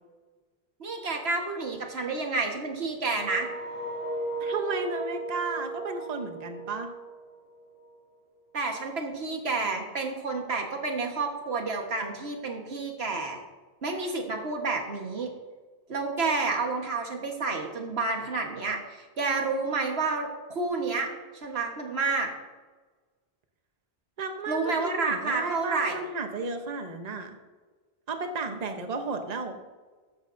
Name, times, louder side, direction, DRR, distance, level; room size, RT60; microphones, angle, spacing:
voice 1, 0.8-3.5 8.5-13.4 13.8-15.3 15.9-21.1 21.4-22.3 24.5-26.0, right 3 dB, 90° right, 2 dB, 1.7 m, -30 dB
sound 1, 3.1-8.0, right 2 dB, 80° left, 2.1 m, -36 dB
voice 2, 4.4-6.9 24.2-27.4 28.1-29.6, right 3 dB, 40° right, 5 dB, 1.0 m, -33 dB
14.5 x 10.5 x 2.7 m, 1.3 s
omnidirectional pair, 1.0 m